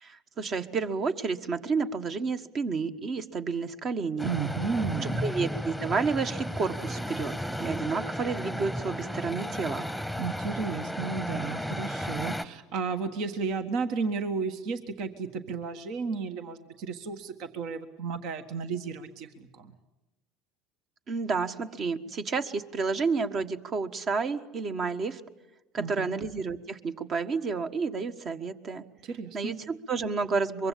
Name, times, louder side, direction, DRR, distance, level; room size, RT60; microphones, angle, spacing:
voice 1, 0.0-4.3 4.9-7.3 7.6-9.9 21.1-25.2 25.7-28.8 29.3-30.7, right 4 dB, 45° right, 8 dB, 1.5 m, -30 dB
sound 1, 4.2-12.4, equal, 5° right, 1.2 m, -34 dB
voice 2, 4.2-5.2 10.2-19.7 25.8-26.1 29.0-29.6, right 5 dB, 60° right, 9 dB, 1.5 m, -33 dB
24.0 x 23.0 x 8.6 m, 1.0 s
hypercardioid pair, 75°, 0 cm